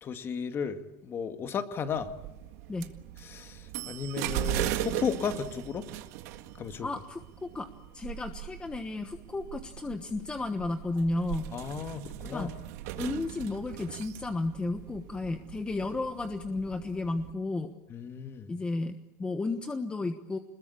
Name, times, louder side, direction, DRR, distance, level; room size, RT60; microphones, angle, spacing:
voice 1, 0.0-2.1 3.2-5.9 6.5-6.9 11.5-12.5 17.9-18.5, left 6 dB, 30° left, 8 dB, 2.0 m, -34 dB
sound 1, 1.9-17.3, right 13 dB, 80° right, 1.8 m, -39 dB
voice 2, 6.8-7.7 7.9-11.5 12.3-12.5 13.0-17.7 18.5-20.4, left 2 dB, 10° left, 7 dB, 1.2 m, -33 dB
27.0 x 21.0 x 8.5 m, 0.95 s
cardioid pair, 155°, 8 cm